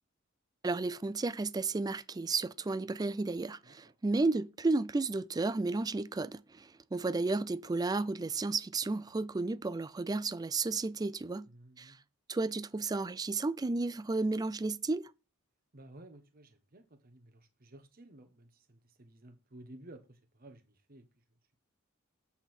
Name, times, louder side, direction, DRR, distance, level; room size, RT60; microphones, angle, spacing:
voice 1, 0.6-11.5 11.8-11.9 12.3-15.1, right 3 dB, 20° right, 0.4 m, -33 dB
voice 2, 11.5-12.0 15.7-21.2, right 1 dB, 45° right, 1.2 m, -55 dB
8.1 x 5.6 x 4.4 m
head